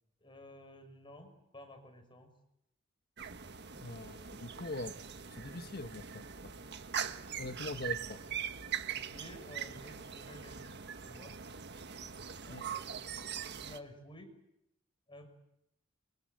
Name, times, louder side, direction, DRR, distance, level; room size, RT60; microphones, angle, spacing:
voice 1, 0.2-2.3 8.9-11.4 12.5-14.3 15.1-15.3, left 1 dB, 25° left, 6 dB, 6.0 m, -53 dB
sound 1, 3.2-13.8, right 8 dB, 55° right, 1.5 m, -42 dB
voice 2, 3.7-4.9 5.4-6.2 7.4-8.2 12.5-12.7, left 2 dB, 50° left, 8 dB, 1.4 m, -42 dB
28.0 x 25.0 x 8.0 m, 0.81 s
head